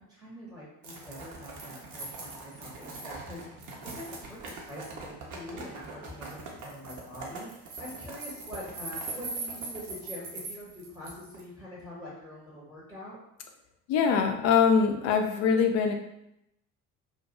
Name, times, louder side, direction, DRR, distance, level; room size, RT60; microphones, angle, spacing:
voice 1, 0.1-3.4 3.9-13.2, left 1 dB, ahead, -7 dB, 0.8 m, -44 dB
sound 1, 0.8-11.4, right 3 dB, 45° right, 0.6 m, -41 dB
voice 2, 13.9-15.9, left 6 dB, 40° left, 5 dB, 0.4 m, -23 dB
2.1 x 2.1 x 2.8 m, 0.81 s
figure-of-eight pair, 55°, 43 cm